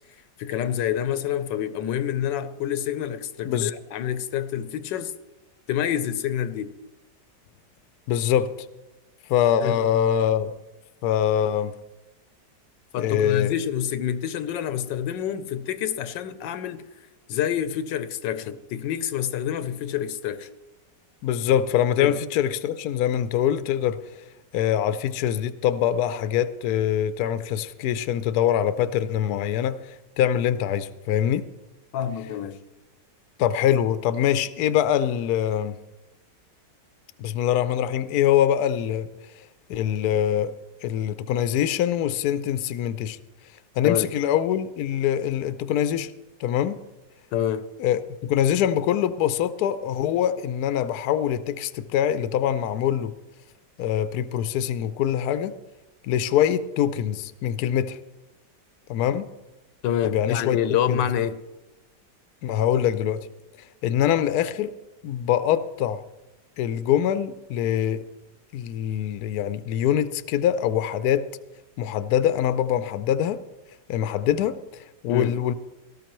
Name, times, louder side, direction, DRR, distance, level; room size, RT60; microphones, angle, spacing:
voice 1, 0.4-5.1 5.7-6.7 9.6-9.8 12.9-16.8 17.3-20.5 22.0-22.2 31.9-32.6 43.8-44.1 47.3-47.6 59.8-61.4 75.1-75.3, left 10 dB, 85° left, 1.4 m, -27 dB
voice 2, 8.1-8.6 9.3-10.6 11.0-11.7 13.0-13.5 21.2-24.0 24.5-31.5 33.4-35.8 37.2-39.1 39.7-40.5 40.8-43.2 43.8-46.1 46.4-46.8 47.8-53.1 53.8-55.6 56.0-58.0 58.9-59.3 60.0-60.6 60.9-61.0 62.4-63.3 63.8-64.7 65.0-66.0 66.6-68.0 68.5-71.3 71.8-73.4 73.9-75.5, left 10 dB, 70° left, 1.0 m, -24 dB
18.0 x 13.0 x 3.0 m
omnidirectional pair, 1.9 m